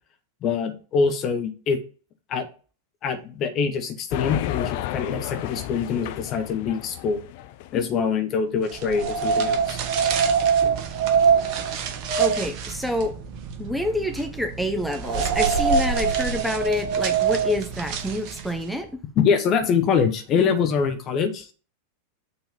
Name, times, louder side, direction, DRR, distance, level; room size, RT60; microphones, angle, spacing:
voice 1, 0.4-1.8 2.3-2.5 3.0-7.2 7.7-9.8 19.2-21.5, left 6 dB, 35° left, 7 dB, 1.1 m, -24 dB
sound 1, 4.1-7.9, left 13 dB, 55° left, 0.5 m, -32 dB
sound 2, 8.7-18.7, right 6 dB, 45° right, 0.9 m, -24 dB
voice 2, 12.2-13.2 13.6-19.0, left 1 dB, ahead, 7 dB, 0.9 m, -27 dB
7.0 x 3.8 x 5.3 m, 0.37 s
figure-of-eight pair, 90°, 0 cm